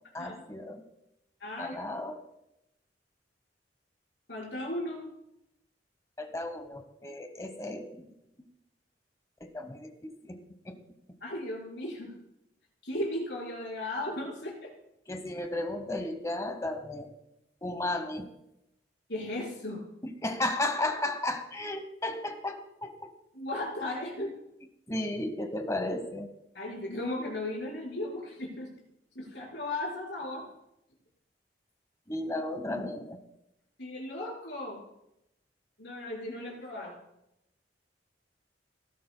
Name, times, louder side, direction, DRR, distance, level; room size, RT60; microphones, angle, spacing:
voice 1, 0.1-0.8 1.6-2.2 6.2-8.0 9.4-10.4 10.6-10.8 15.1-17.1 17.6-18.3 20.0-23.1 24.9-26.3 32.1-33.2, left 2 dB, 20° left, 7 dB, 1.1 m, -34 dB
voice 2, 1.4-2.0 4.3-5.1 11.2-12.1 12.8-14.7 19.1-19.8 23.3-24.3 26.5-28.7 29.1-30.4 33.8-34.8 35.8-36.9, left 1 dB, 75° left, -3 dB, 5.0 m, -36 dB
18.5 x 11.5 x 2.2 m, 0.85 s
head